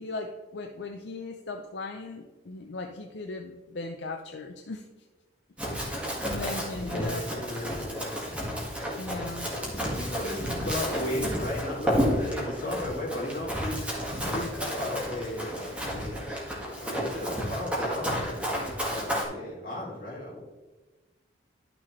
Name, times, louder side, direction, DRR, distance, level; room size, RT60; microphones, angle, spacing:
voice 1, 0.0-4.9 5.6-7.3 9.0-9.5, left 3 dB, 70° left, 4 dB, 0.6 m, -38 dB
Run, 5.6-19.2, equal, 5° right, 1.8 m, -31 dB
voice 2, 6.8-8.3 9.7-13.9 14.2-16.3 16.8-20.4, left 1 dB, 45° left, -4 dB, 2.9 m, -35 dB
12.0 x 6.1 x 3.2 m, 1.2 s
head